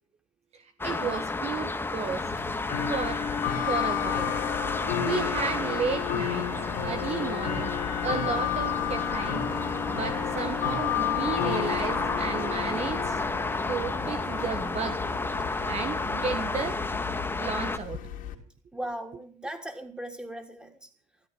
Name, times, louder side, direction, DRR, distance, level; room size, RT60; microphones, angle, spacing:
voice 1, 0.5-2.3 2.9-3.2 3.6-4.3 5.0-6.5 6.8-7.8 8.0-9.4 9.9-13.2 13.7-15.0 15.6-16.8 17.3-18.0, right 6 dB, 40° right, 7 dB, 1.6 m, -33 dB
sound 1, 0.8-17.8, left 3 dB, 15° left, 1.0 m, -32 dB
Bell / Tick-tock, 2.0-18.3, left 10 dB, 55° left, 3.1 m, -32 dB
voice 2, 18.7-20.9, right 1 dB, 5° right, 5 dB, 3.7 m, -38 dB
14.0 x 13.5 x 6.8 m, 0.42 s
hypercardioid pair, 65°, 17 cm